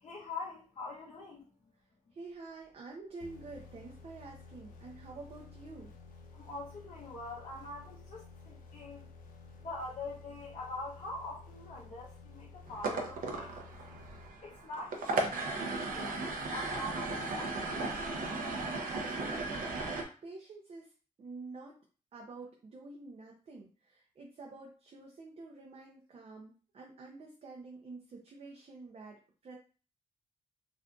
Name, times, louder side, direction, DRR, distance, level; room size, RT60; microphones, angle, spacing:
voice 1, 0.0-1.5 6.3-9.1 9.6-13.7 14.4-15.1 15.7-17.6, left 2 dB, 50° left, -7 dB, 0.8 m, -44 dB
voice 2, 2.1-5.9 18.9-19.7 20.2-20.9 21.2-21.8 22.1-29.6, right 3 dB, 45° right, -1 dB, 0.6 m, -48 dB
sound 1, 3.2-14.9, left 4 dB, 85° left, 0.6 m, -53 dB
sound 2, 12.7-20.0, right 3 dB, 90° right, 0.6 m, -36 dB
3.7 x 2.5 x 2.3 m, 0.37 s
wide cardioid pair, 135°, 14 cm